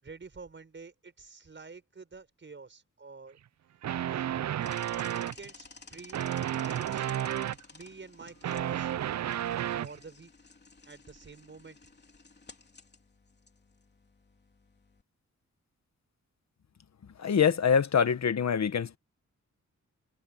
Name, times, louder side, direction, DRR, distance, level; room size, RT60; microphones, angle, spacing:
voice 1, 0.0-3.4 4.1-4.3 5.0-7.1 7.7-8.9 9.8-10.3 10.8-11.8, right 4 dB, 40° right, 6.2 m, -48 dB
sound 1, 3.8-5.5 6.1-7.6 8.2-10.0, right 11 dB, 60° right, 0.5 m, -32 dB
sound 2, 4.6-15.0, left 3 dB, 35° left, 3.6 m, -54 dB
voice 2, 17.2-19.0, left 7 dB, 60° left, 1.4 m, -25 dB
wide cardioid pair, 155°, 31 cm